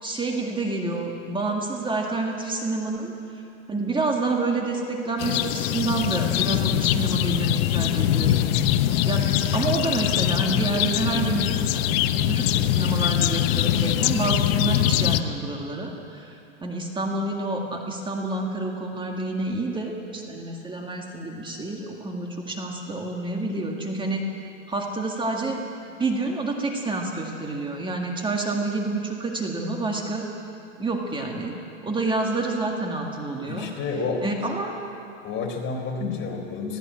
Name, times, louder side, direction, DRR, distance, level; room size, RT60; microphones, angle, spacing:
voice 1, 0.0-3.4 3.7-8.4 8.6-11.5 11.7-24.2 24.7-25.6 25.9-30.2 30.8-31.6 31.8-33.7 34.2-34.7, right 2 dB, 15° right, 1 dB, 1.9 m, -28 dB
sound 1, 5.2-15.2, left 12 dB, 50° left, 1.0 m, -23 dB
voice 2, 33.5-34.2 35.2-36.8, left 4 dB, 30° left, 1 dB, 3.9 m, -29 dB
20.5 x 15.0 x 8.6 m, 2.6 s
hypercardioid pair, 130°, 38 cm